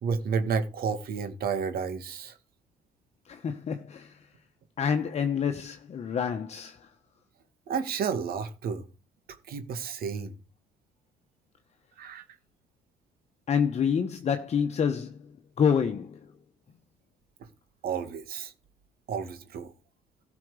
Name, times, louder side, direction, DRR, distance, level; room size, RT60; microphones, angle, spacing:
voice 1, 0.0-2.4 7.7-8.8 9.5-10.4 12.0-12.2 17.8-18.5 19.1-19.7, right 6 dB, 60° right, 2.0 m, -31 dB
voice 2, 3.3-4.2 4.8-6.9 13.5-15.2 15.6-16.2, left 7 dB, 40° left, 1.2 m, -27 dB
15.5 x 6.1 x 5.0 m
cardioid pair, 110°, 17 cm